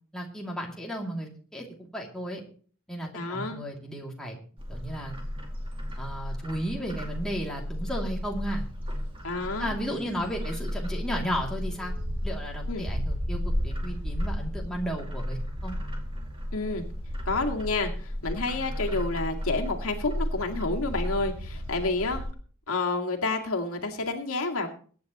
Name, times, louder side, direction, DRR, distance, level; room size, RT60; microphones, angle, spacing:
voice 1, 0.1-2.4 2.9-4.4 4.7-5.2 6.0-8.6 9.6-11.9 12.2-15.4 15.6-15.8, equal, 5° left, -2 dB, 2.6 m, -34 dB
voice 2, 3.1-3.6 9.2-9.7 12.7-12.8 16.5-16.8 17.3-22.2 22.7-24.7, left 3 dB, 70° left, 2 dB, 2.1 m, -29 dB
Bird, 4.6-22.3, equal, 25° right, 2.3 m, -33 dB
23.0 x 9.6 x 3.0 m, 0.43 s
head